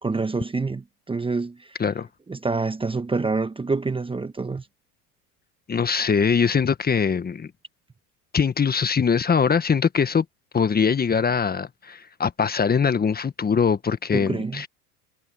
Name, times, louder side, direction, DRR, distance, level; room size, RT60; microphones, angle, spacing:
voice 1, 0.0-1.8 2.3-4.7 14.1-14.6, right 3 dB, 10° right, 1.2 m, -27 dB
voice 2, 5.7-7.5 8.3-10.2 10.5-14.7, left 6 dB, 20° left, 1.5 m, -22 dB
hypercardioid pair, 95°, 46 cm